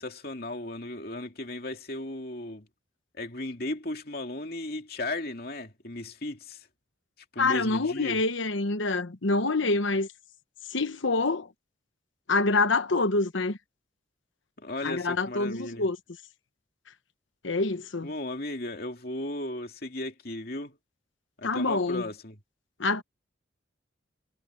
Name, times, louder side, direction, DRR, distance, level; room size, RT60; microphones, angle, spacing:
voice 1, 0.0-2.7 3.2-6.7 7.3-8.2 14.6-15.9 18.0-20.8 21.4-22.4, left 1 dB, 50° left, 2.7 m, -35 dB
voice 2, 7.4-10.1 10.7-11.5 12.3-13.6 14.8-16.0 17.4-18.1 21.4-22.1 22.8-23.0, left 3 dB, 75° left, 1.1 m, -26 dB
head